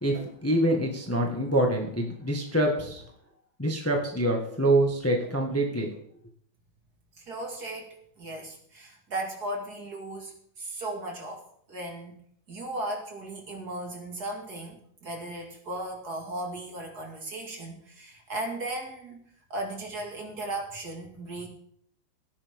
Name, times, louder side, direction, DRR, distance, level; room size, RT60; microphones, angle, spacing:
voice 1, 0.0-3.0 3.6-5.9, right 1 dB, 5° left, 1 dB, 1.5 m, -25 dB
voice 2, 7.2-7.9 8.2-12.2 12.5-19.2 19.5-21.5, right 1 dB, 45° right, 1 dB, 2.7 m, -36 dB
17.5 x 10.5 x 3.7 m, 0.65 s
omnidirectional pair, 2.4 m